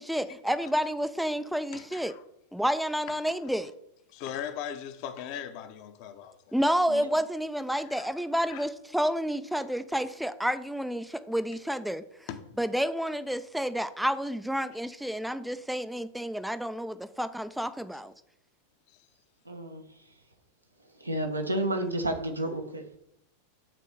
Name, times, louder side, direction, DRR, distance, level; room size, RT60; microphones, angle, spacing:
voice 1, 0.0-2.1 2.5-3.7 6.5-12.0 12.6-18.1, equal, ahead, 0.5 m, -30 dB
voice 2, 1.7-2.2 3.3-3.4 4.1-6.5 7.8-8.1 8.5-8.7 9.6-9.7 12.3-12.6, left 9 dB, 45° left, 0.9 m, -39 dB
voice 3, 19.4-19.8 21.0-23.0, right 1 dB, 80° right, 1.2 m, -31 dB
7.6 x 4.1 x 6.7 m
figure-of-eight pair, 90°, 0 cm